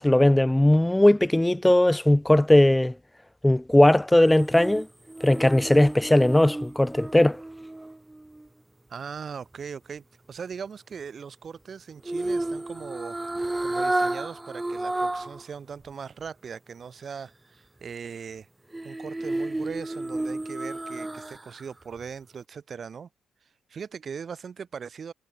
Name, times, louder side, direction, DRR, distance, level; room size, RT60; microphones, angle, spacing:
voice 1, 0.0-2.9 3.4-4.9 5.2-7.4, left 1 dB, 10° left, 0.4 m, -19 dB
sound 1, 4.2-8.5 12.0-15.4 15.8-15.9 18.7-21.6 22.0-22.1, right 2 dB, 15° right, 1.1 m, -31 dB
voice 2, 8.9-18.5 18.8-23.1 23.7-25.1, right 6 dB, 50° right, 7.5 m, -39 dB
hypercardioid pair, 50°, 0 cm